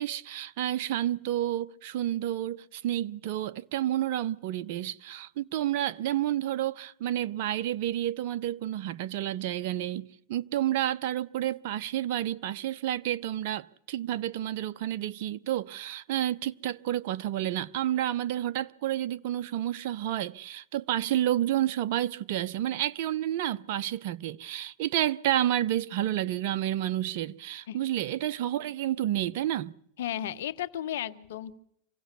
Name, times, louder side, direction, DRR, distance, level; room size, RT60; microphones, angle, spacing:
voice 1, 0.0-29.7, right 12 dB, 65° right, 0.9 m, -30 dB
voice 2, 30.0-31.6, left 11 dB, 80° left, 1.5 m, -34 dB
26.0 x 17.0 x 7.0 m
hypercardioid pair, 110°, 0 cm